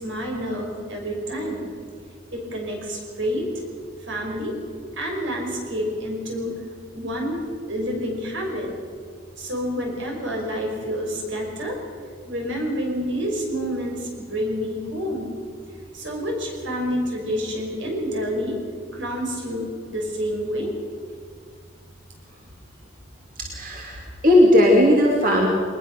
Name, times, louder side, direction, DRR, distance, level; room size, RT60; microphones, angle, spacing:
voice 1, 0.0-1.7 2.3-3.5 4.1-4.6 5.0-6.5 6.9-7.4 7.7-8.7 9.4-11.8 12.3-15.3 15.9-18.6 18.9-20.7, equal, 75° right, 1 dB, 5.8 m, -28 dB
voice 2, 23.4-25.5, left 1 dB, 45° right, -1 dB, 2.6 m, -17 dB
21.5 x 20.0 x 6.6 m, 2.1 s
head